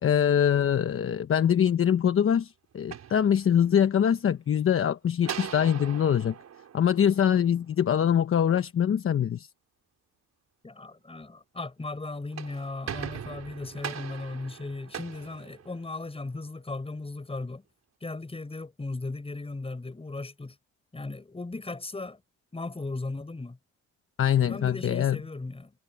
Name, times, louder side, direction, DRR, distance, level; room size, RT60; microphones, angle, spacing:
voice 1, 0.0-6.3 6.7-9.5 24.2-25.2, left 9 dB, 45° left, 1.0 m, -23 dB
sound 1, 2.7-3.9 5.2-7.7 12.1-16.2, right 8 dB, 60° right, 4.4 m, -40 dB
voice 2, 10.6-17.6 18.0-20.6 20.9-22.2 22.5-23.6 24.5-25.7, left 3 dB, 20° left, 5.4 m, -37 dB
cardioid pair, 90°, 30 cm